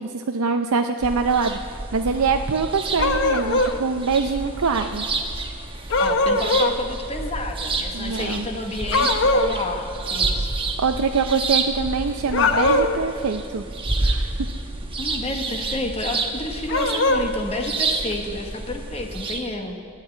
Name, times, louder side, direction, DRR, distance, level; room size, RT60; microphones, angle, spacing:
voice 1, 0.0-5.1 7.9-8.5 10.8-13.6 14.0-14.5, right 5 dB, 80° right, 6 dB, 0.5 m, -24 dB
sound 1, 1.0-19.4, right 3 dB, 25° right, 1.0 m, -29 dB
sound 2, 3.0-3.8 5.9-6.8 8.9-9.5 12.3-13.0 16.7-17.3, left 2 dB, 60° left, 0.8 m, -20 dB
voice 2, 6.0-10.5 15.0-19.8, left 2 dB, 30° left, 3 dB, 1.1 m, -30 dB
13.0 x 9.0 x 9.0 m, 2.4 s
head